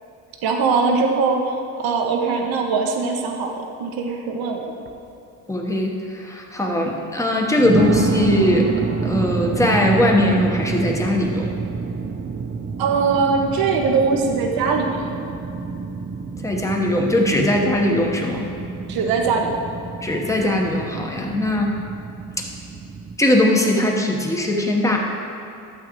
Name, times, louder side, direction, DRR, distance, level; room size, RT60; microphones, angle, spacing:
voice 1, 0.4-1.4 1.8-4.7 12.8-15.2 18.9-19.6, right 4 dB, 65° right, 2 dB, 1.1 m, -21 dB
sound 1, 4.9-5.1 5.7-5.8 7.6-23.2, right 5 dB, 30° right, 0.6 m, -28 dB
voice 2, 5.5-8.7 9.0-11.5 16.4-18.5 20.0-21.7 23.2-25.0, left 1 dB, 10° left, 0 dB, 1.1 m, -20 dB
12.0 x 7.2 x 3.1 m, 2.8 s
cardioid pair, 100°, 38 cm